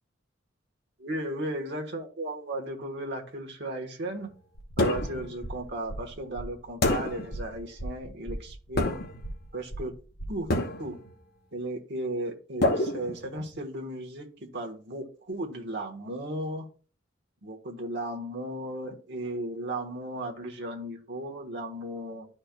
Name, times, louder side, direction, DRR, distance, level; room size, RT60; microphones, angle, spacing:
voice 1, 1.0-4.3 4.8-9.0 9.5-9.9 10.3-10.5 10.8-11.0 11.5-16.7 17.4-22.3, right 1 dB, 60° right, 1 dB, 1.3 m, -35 dB
sound 1, 4.5-10.5, right 1 dB, 70° left, 1.3 m, -39 dB
sound 2, 4.8-5.3 6.8-7.4 8.8-9.3 10.5-11.1 12.6-13.6, left 2 dB, 55° left, 1.0 m, -27 dB
11.5 x 4.3 x 2.3 m, 0.38 s
head